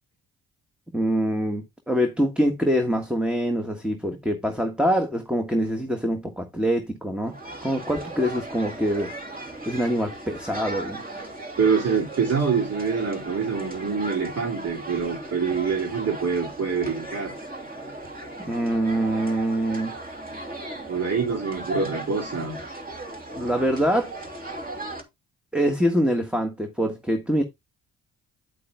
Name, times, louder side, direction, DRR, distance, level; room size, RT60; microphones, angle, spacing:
voice 1, 0.9-7.3 7.6-9.1 9.6-11.0 18.4-19.9 23.3-24.1 25.5-27.4, equal, 5° right, 1.5 m, -24 dB
sound 1, 7.2-25.0, right 1 dB, 20° right, 2.9 m, -37 dB
voice 2, 11.6-17.3 20.9-22.6, right 5 dB, 40° right, 2.6 m, -25 dB
9.3 x 8.3 x 2.3 m
hypercardioid pair, 45°, 40 cm